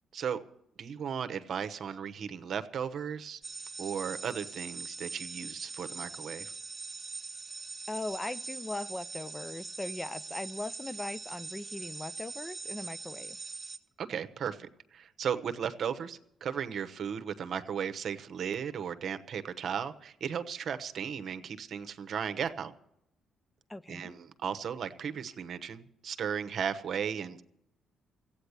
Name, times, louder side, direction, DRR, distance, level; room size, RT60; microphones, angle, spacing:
voice 1, 0.8-3.4 3.8-6.5 14.0-22.7 23.9-27.4, right 7 dB, 60° right, 10 dB, 1.0 m, -36 dB
sound 1, 3.4-13.8, right 4 dB, 15° right, 1.6 m, -42 dB
voice 2, 7.9-13.4 23.7-24.1, left 2 dB, 15° left, 17 dB, 0.4 m, -39 dB
15.0 x 8.9 x 8.2 m, 0.79 s
cardioid pair, 90°, 0 cm